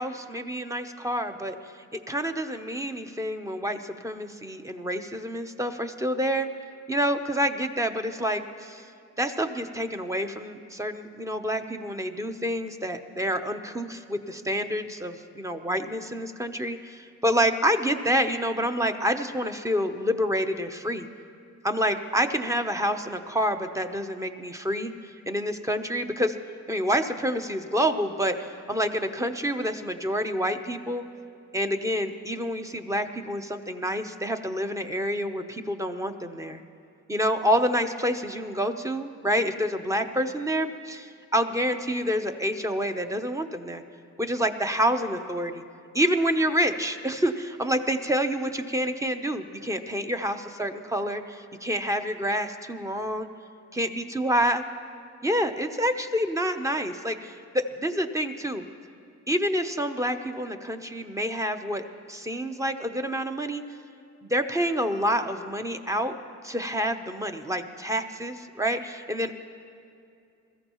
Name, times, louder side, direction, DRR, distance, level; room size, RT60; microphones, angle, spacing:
voice 1, 0.0-1.6 2.1-6.5 6.9-8.9 9.2-21.1 21.6-24.9 25.3-26.3 26.7-31.0 31.5-36.6 37.1-43.8 44.2-45.6 45.9-53.3 53.7-54.6 55.2-58.6 59.3-63.6 64.2-66.1 66.4-69.4, equal, 10° right, 7 dB, 0.8 m, -28 dB
21.5 x 14.0 x 3.0 m, 2.5 s
cardioid pair, 90°, 30 cm